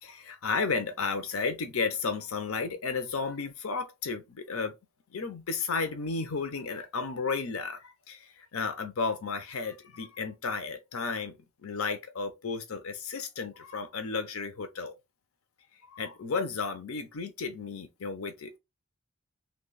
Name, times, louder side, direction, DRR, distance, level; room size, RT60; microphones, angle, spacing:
voice 1, 0.0-4.7 5.1-11.3 11.6-14.9 15.8-18.6, left 4 dB, 85° left, 0.6 m, -33 dB
3.1 x 2.3 x 3.9 m
head